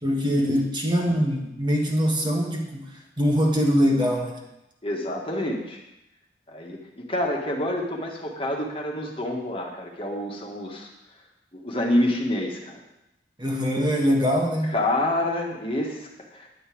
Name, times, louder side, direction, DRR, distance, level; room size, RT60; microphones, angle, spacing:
voice 1, 0.0-2.9 3.2-4.4 13.4-14.7, equal, 25° right, 0 dB, 1.5 m, -23 dB
voice 2, 4.8-5.8 6.5-10.9 11.6-12.8 14.7-16.5, left 1 dB, 30° left, 0 dB, 1.7 m, -27 dB
10.5 x 5.6 x 8.6 m, 0.89 s
head